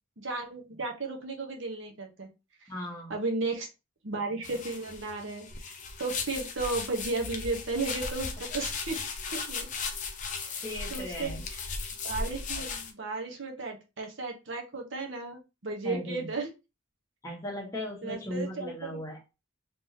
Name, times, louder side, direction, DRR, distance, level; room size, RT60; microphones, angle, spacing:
voice 1, 0.2-2.3 3.1-3.7 4.0-9.0 9.3-9.7 10.4-10.6 10.9-11.6 12.0-16.5 18.0-19.0, right 3 dB, 60° right, 2 dB, 0.9 m, -34 dB
voice 2, 2.7-3.1 10.6-11.4 15.8-16.3 17.2-19.2, left 1 dB, 15° left, -1 dB, 1.3 m, -37 dB
sound 1, 4.4-12.9, left 4 dB, 40° left, 0.6 m, -37 dB
3.5 x 3.1 x 2.7 m, 0.27 s
head